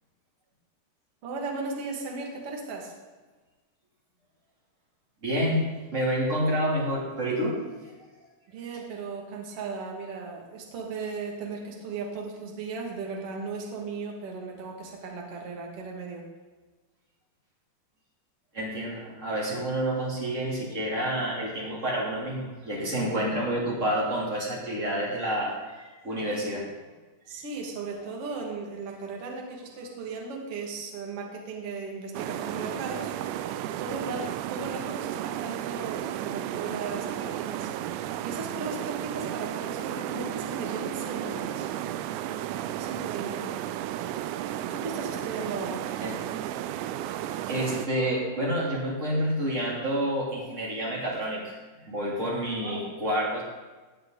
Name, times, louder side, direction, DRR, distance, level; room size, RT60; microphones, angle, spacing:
voice 1, 1.2-2.9 8.5-16.3 27.3-33.1 33.8-37.7 38.2-41.7 42.7-43.5 44.6-45.9 52.6-52.8, right 4 dB, 50° right, 0 dB, 1.8 m, -36 dB
voice 2, 5.2-7.6 18.5-26.7 46.0-46.2 47.5-51.5 51.8-53.4, equal, 20° right, -5 dB, 2.2 m, -29 dB
sound 1, 32.1-47.9, right 12 dB, 90° right, 2.5 m, -33 dB
18.5 x 7.9 x 4.0 m, 1.3 s
omnidirectional pair, 5.7 m